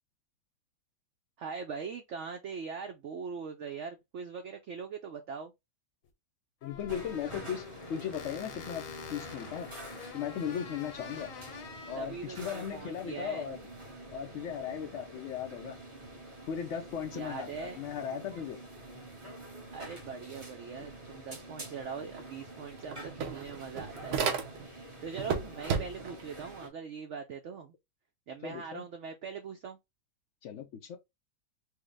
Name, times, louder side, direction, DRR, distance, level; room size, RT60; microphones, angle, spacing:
voice 1, 1.4-5.5 11.9-13.5 17.1-17.8 19.7-24.3 25.0-27.7 28.3-29.8, right 5 dB, 85° right, 0.6 m, -41 dB
sound 1, 6.0-6.1 6.6-12.0, left 6 dB, 60° left, 1.0 m, -46 dB
voice 2, 6.6-8.8 9.1-9.7 10.1-11.3 11.9-13.6 14.1-15.8 16.5-18.6 28.4-28.8 30.4-31.0, left 8 dB, 80° left, 0.6 m, -37 dB
sound 2, 6.9-26.7, right 1 dB, 25° right, 0.7 m, -47 dB
sound 3, 22.2-22.3 22.6-24.8 25.2-26.2, right 6 dB, 65° right, 1.2 m, -33 dB
4.6 x 2.1 x 3.3 m
omnidirectional pair, 1.9 m